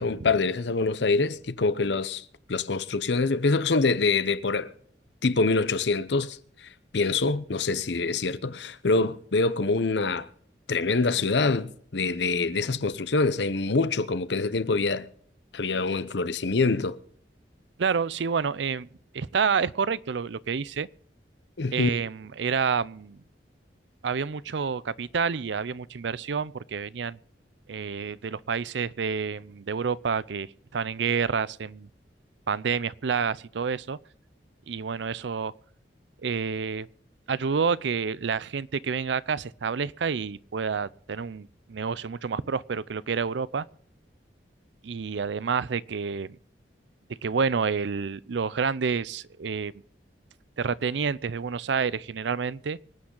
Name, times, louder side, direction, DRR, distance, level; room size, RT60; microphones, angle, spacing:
voice 1, 0.0-4.7 5.2-10.3 10.7-15.1 15.5-17.0 21.6-21.9, left 3 dB, 75° left, 0.8 m, -25 dB
voice 2, 17.8-18.9 19.1-20.9 21.7-23.2 24.0-27.2 27.7-31.9 32.5-34.0 34.7-35.5 36.2-36.9 37.3-43.7 44.8-46.3 47.2-49.7 50.6-52.8, right 5 dB, 75° right, 0.5 m, -28 dB
25.0 x 8.8 x 3.9 m
head